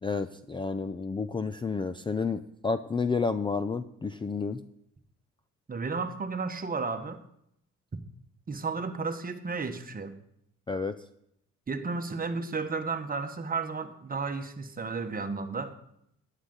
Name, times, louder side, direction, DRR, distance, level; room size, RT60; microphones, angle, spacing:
voice 1, 0.0-4.6 10.7-11.0, left 4 dB, 15° left, 11 dB, 0.4 m, -30 dB
voice 2, 5.7-7.2 8.5-10.2 11.7-15.8, right 4 dB, 30° right, 8 dB, 1.2 m, -33 dB
13.0 x 10.0 x 3.9 m, 0.75 s
cardioid pair, 90°, 30 cm